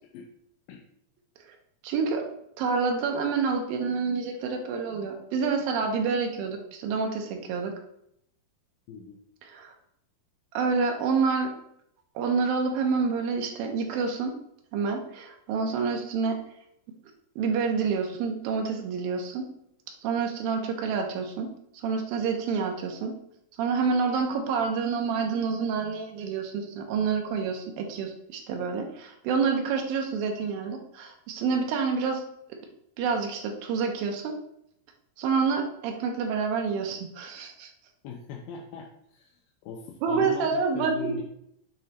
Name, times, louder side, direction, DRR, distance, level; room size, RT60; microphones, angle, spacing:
voice 1, 1.8-2.3 2.6-7.7 9.5-9.7 10.5-11.5 12.2-14.4 14.7-16.4 17.4-19.5 20.0-21.5 21.8-23.2 23.6-32.2 33.0-34.3 35.2-37.7 40.0-41.2, right 5 dB, 85° right, 3 dB, 2.6 m, -28 dB
voice 2, 8.9-9.2 38.0-39.4 39.6-41.2, left 6 dB, 80° left, 0 dB, 2.3 m, -40 dB
7.9 x 3.1 x 4.3 m, 0.74 s
omnidirectional pair, 4.2 m